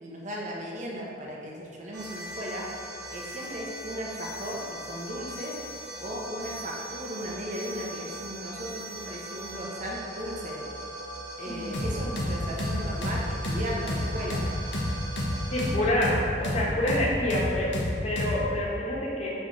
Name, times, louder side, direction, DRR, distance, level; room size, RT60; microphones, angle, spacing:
voice 1, 0.0-2.7 3.1-5.7 6.0-10.6 11.4-14.4, equal, 45° right, -3 dB, 1.2 m, -36 dB
sound 1, 1.9-15.8, right 1 dB, 65° right, 1.5 m, -40 dB
sound 2, 11.7-18.4, left 1 dB, 90° left, 1.0 m, -29 dB
voice 2, 15.5-17.7 18.0-19.3, left 1 dB, 40° left, -5 dB, 1.5 m, -27 dB
5.0 x 4.4 x 6.1 m, 2.3 s
head